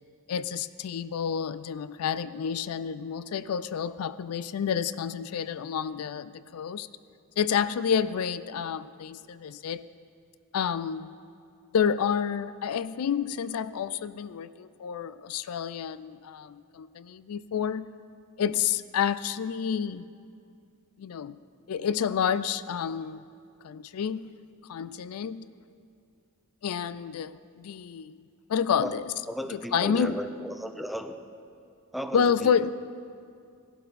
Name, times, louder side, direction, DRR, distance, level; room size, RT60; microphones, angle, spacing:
voice 1, 0.3-6.9 7.4-9.8 10.5-11.1 11.7-17.9 18.4-20.1 21.0-21.3 21.7-23.2 23.6-24.3 24.7-25.5 26.6-28.2 28.5-29.1 29.5-30.2 32.1-32.7, left 7 dB, 80° left, 15 dB, 0.4 m, -29 dB
voice 2, 29.3-31.1 31.9-32.7, equal, ahead, 7 dB, 0.5 m, -35 dB
17.5 x 12.0 x 4.2 m, 2.4 s
head